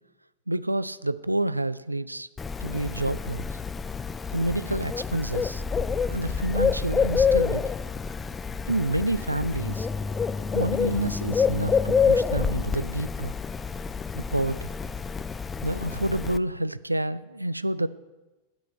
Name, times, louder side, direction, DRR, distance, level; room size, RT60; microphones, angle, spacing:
voice 1, 0.5-2.3 2.6-3.6 4.3-5.6 6.1-7.6 8.7-9.9 10.5-13.3 14.1-14.7 15.6-17.9, right 1 dB, 85° right, 15 dB, 0.4 m, -28 dB
Bird, 2.4-16.4, left 5 dB, 15° left, 0.4 m, -27 dB
8.1 x 8.1 x 9.0 m, 1.1 s
figure-of-eight pair, 90°, 0 cm